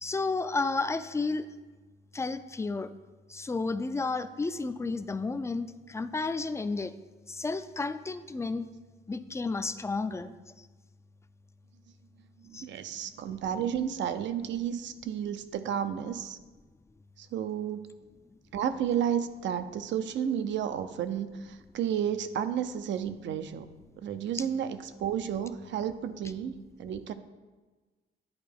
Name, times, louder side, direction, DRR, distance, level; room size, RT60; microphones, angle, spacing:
voice 1, 0.0-1.5 2.1-2.9 3.3-6.9 7.3-8.7 9.1-10.3 12.5-12.7, left 3 dB, 15° left, 11 dB, 0.3 m, -32 dB
voice 2, 12.4-16.4 17.2-18.0 18.5-23.7 24.0-27.1, right 9 dB, 70° right, 11 dB, 0.5 m, -32 dB
10.5 x 4.4 x 3.4 m, 1.3 s
cardioid pair, 90°, 20 cm